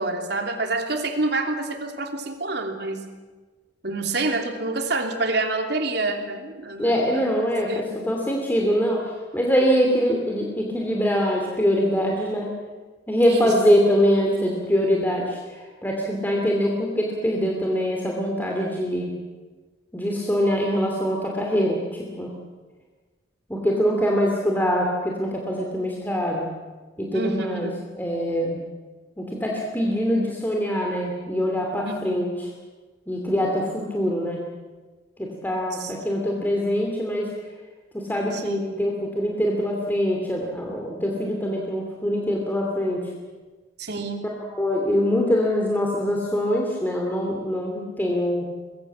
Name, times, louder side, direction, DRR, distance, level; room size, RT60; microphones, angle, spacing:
voice 1, 0.0-3.0 3.8-7.3 7.7-8.0 13.3-13.5 27.1-27.8 31.8-32.2 35.8-35.9 38.3-38.8 43.8-44.2, right 2 dB, 60° right, 4 dB, 3.0 m, -27 dB
voice 2, 6.8-12.5 13.1-19.1 19.9-22.3 23.5-26.5 27.0-27.7 28.0-28.6 29.2-32.5 33.1-34.4 35.2-37.3 37.9-43.1 44.5-48.5, equal, 10° left, -1 dB, 2.7 m, -23 dB
24.5 x 21.0 x 7.5 m, 1.3 s
head